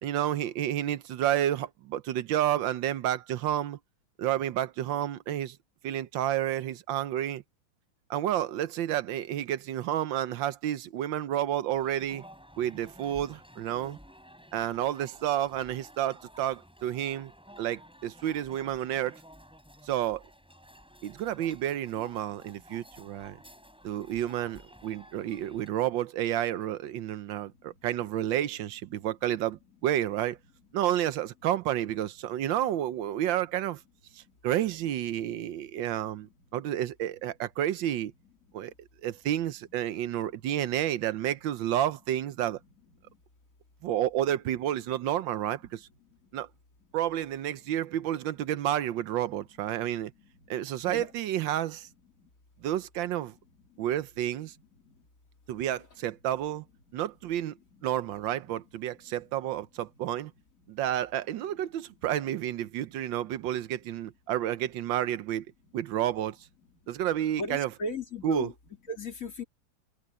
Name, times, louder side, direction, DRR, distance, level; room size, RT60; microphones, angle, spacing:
voice 1, 0.0-3.8 4.2-5.6 5.8-7.4 8.1-12.2 12.6-14.0 14.5-17.3 17.6-19.2 19.8-20.2 21.0-23.4 23.8-30.4 30.7-33.8 34.1-38.1 38.5-38.7 39.0-42.6 43.8-45.9 46.3-46.5 46.9-50.1 50.5-51.9 52.6-53.3 53.8-54.5 55.5-56.6 56.9-57.6 57.8-60.3 60.7-65.5 65.7-66.4 66.9-67.7 68.2-68.5, right 12 dB, 75° right, 1.5 m, -30 dB
sound 1, 11.7-25.7, equal, ahead, 7.2 m, -53 dB
voice 2, 67.4-68.5 68.9-69.4, left 2 dB, 40° left, 3.4 m, -35 dB
omnidirectional pair, 2.1 m